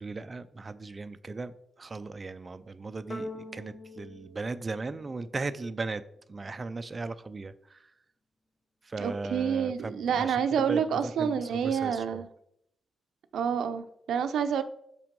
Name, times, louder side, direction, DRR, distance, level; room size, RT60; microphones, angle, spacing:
voice 1, 0.0-6.0 6.3-7.9 8.8-12.2, right 3 dB, 25° right, 0.4 m, -37 dB
sound 1, 3.1-5.7, left 1 dB, 25° left, 0.7 m, -43 dB
voice 2, 9.0-12.3 13.3-14.6, right 7 dB, 80° right, 0.6 m, -28 dB
6.1 x 5.9 x 5.2 m
wide cardioid pair, 135°, 0 cm